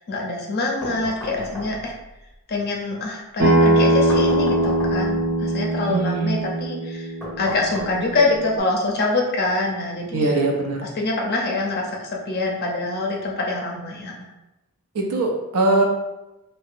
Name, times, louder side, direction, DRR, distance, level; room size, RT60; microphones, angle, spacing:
voice 1, 0.0-1.9 2.5-7.1 7.4-10.5 10.8-14.1, left 3 dB, 45° left, -1 dB, 0.5 m, -25 dB
sound 1, 0.8-2.1 4.1-5.4 7.2-8.4, left 1 dB, 5° left, 0.7 m, -34 dB
Acoustic guitar, 3.4-8.6, right 1 dB, 50° right, 0.7 m, -21 dB
voice 2, 5.9-6.4 10.1-10.9 14.9-15.9, right 2 dB, 90° right, 1 dB, 0.5 m, -21 dB
2.7 x 2.1 x 2.4 m, 0.97 s
head